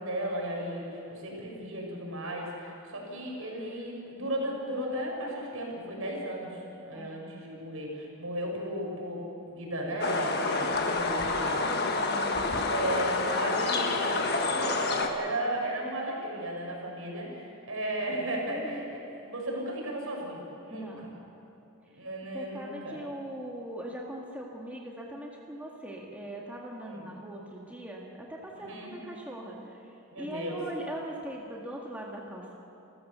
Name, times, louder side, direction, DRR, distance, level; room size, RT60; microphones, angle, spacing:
voice 1, 0.0-11.8 12.7-20.9 21.9-23.0 26.8-27.1 28.6-28.9 30.1-30.6, right 1 dB, 75° right, -1 dB, 5.5 m, -35 dB
voice 2, 6.9-7.3 11.7-12.7 18.5-18.8 20.7-21.1 22.3-29.9 30.2-32.5, right 1 dB, 5° right, -2 dB, 1.8 m, -41 dB
sound 1, 10.0-15.1, left 3 dB, 45° left, 1.5 m, -28 dB
28.5 x 14.0 x 6.8 m, 2.9 s
head